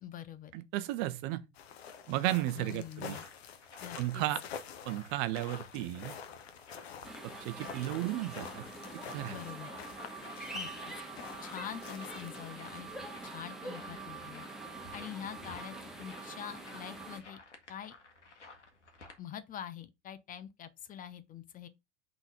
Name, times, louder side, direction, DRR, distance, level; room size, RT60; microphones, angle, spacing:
voice 1, 0.0-0.5 2.6-3.2 3.8-4.2 9.3-9.7 10.5-10.9 11.4-12.9 13.2-14.4 14.9-17.4 17.7-17.9 19.2-21.7, left 9 dB, 25° left, 0.7 m, -45 dB
voice 2, 0.5-1.4 2.1-3.2 4.0-4.4 4.8-6.1 7.4-8.6 9.1-9.4, right 15 dB, 45° right, 0.9 m, -34 dB
sound 1, 1.5-12.5, left 7 dB, 60° left, 1.1 m, -48 dB
sound 2, 2.6-19.2, left 3 dB, 75° left, 1.7 m, -55 dB
sound 3, 7.0-17.2, right 2 dB, ahead, 1.6 m, -45 dB
5.9 x 4.0 x 5.1 m
figure-of-eight pair, 85°, 35 cm